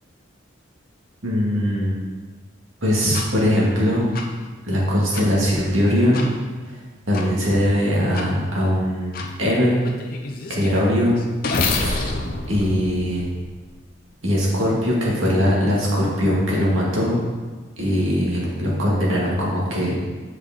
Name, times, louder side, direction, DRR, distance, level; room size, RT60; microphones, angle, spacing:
voice 1, 1.2-2.0 2.8-4.2 4.6-6.3 6.6-6.8 7.1-9.8 10.5-11.2 11.6-12.0 12.5-13.3 14.2-17.2 17.8-20.0, equal, 85° right, -5 dB, 2.0 m, -21 dB
sound 1, 3.1-3.3 4.1-4.2 5.1-5.3 6.1-6.3 7.1-7.3 8.1-8.3 9.1-9.3 9.8-13.7, left 3 dB, 45° left, 0.6 m, -27 dB
7.9 x 4.9 x 3.7 m, 1.3 s
head